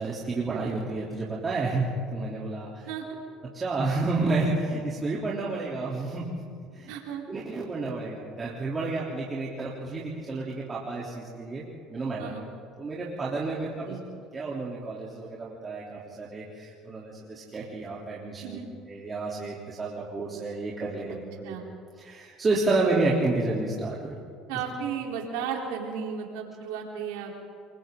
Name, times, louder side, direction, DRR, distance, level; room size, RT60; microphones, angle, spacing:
voice 1, 0.0-2.9 3.5-6.2 6.7-6.9 7.3-11.6 11.9-12.3 12.8-14.0 14.3-18.6 18.9-21.6 22.0-24.2, right 3 dB, 25° right, -5 dB, 3.4 m, -30 dB
voice 2, 2.9-3.2 6.9-7.2 12.2-12.4 13.8-14.0 18.4-18.7 21.4-21.7 24.5-27.4, right 7 dB, 85° right, 0 dB, 3.8 m, -34 dB
28.5 x 23.5 x 3.9 m, 2.3 s
supercardioid pair, 95°, 0 cm